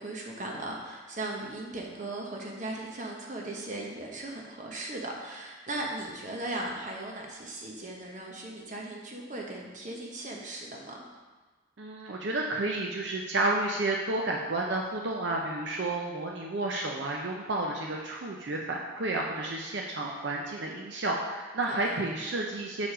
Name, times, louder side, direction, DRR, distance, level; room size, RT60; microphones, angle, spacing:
voice 1, 0.0-11.0 21.7-22.0, right 2 dB, 40° right, -1 dB, 1.0 m, -38 dB
voice 2, 11.8-22.9, right 2 dB, 65° right, 0 dB, 0.6 m, -31 dB
7.0 x 4.6 x 5.0 m, 1.3 s
head